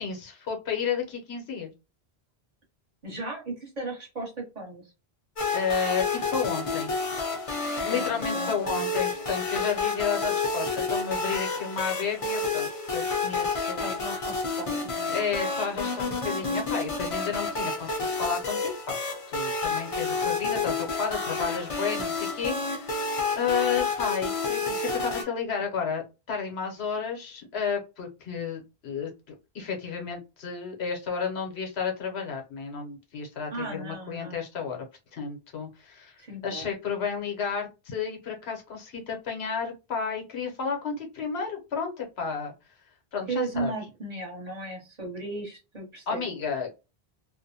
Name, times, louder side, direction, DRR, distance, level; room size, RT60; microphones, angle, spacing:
voice 1, 0.0-1.7 5.5-6.9 7.8-13.8 15.1-19.0 19.3-23.1 23.4-29.1 29.5-34.8 35.1-36.2 36.4-42.5 43.1-43.7 46.1-46.8, left 6 dB, 80° left, 2 dB, 1.0 m, -32 dB
voice 2, 3.0-4.9 7.9-8.8 13.8-15.1 33.5-34.4 36.2-36.7 43.3-46.3, right 3 dB, 40° right, -1 dB, 1.2 m, -36 dB
sound 1, 5.4-25.2, left 3 dB, 40° left, 0.6 m, -30 dB
2.6 x 2.1 x 2.6 m, 0.28 s
omnidirectional pair, 1.1 m